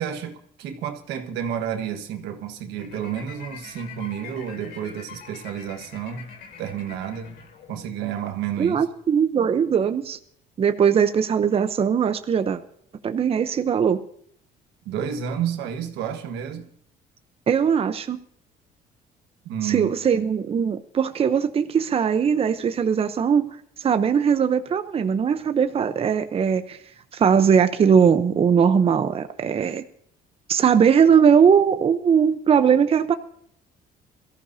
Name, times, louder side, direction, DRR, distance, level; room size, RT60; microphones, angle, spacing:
voice 1, 0.0-6.3 6.6-7.4 7.7-8.8 14.8-16.7 19.4-20.2, right 9 dB, 90° right, 1.5 m, -30 dB
sound 1, 2.8-8.0, left 6 dB, 90° left, 3.2 m, -44 dB
voice 2, 8.6-10.2 10.6-12.6 13.0-14.0 17.5-18.2 19.6-26.8 27.1-29.8 30.5-33.1, right 7 dB, 35° right, 0.8 m, -20 dB
22.5 x 14.5 x 2.8 m
cardioid pair, 110°, 17 cm